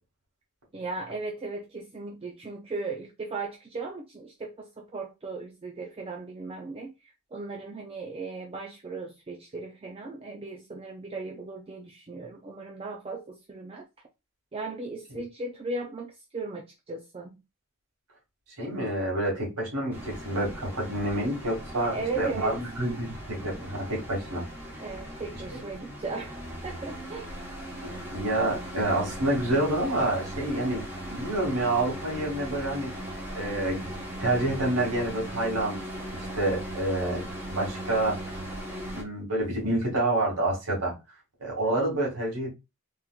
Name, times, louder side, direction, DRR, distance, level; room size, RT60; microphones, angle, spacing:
voice 1, 0.7-13.9 14.5-17.4 21.8-22.6 24.8-27.4, right 3 dB, 25° right, 0.4 m, -37 dB
voice 2, 18.6-24.4 27.8-32.9 33.3-35.8 36.1-38.2 38.9-40.9 41.4-42.5, right 1 dB, 85° right, 2.0 m, -28 dB
sound 1, 19.9-39.0, right 1 dB, 10° right, 1.0 m, -38 dB
3.6 x 2.9 x 2.3 m
head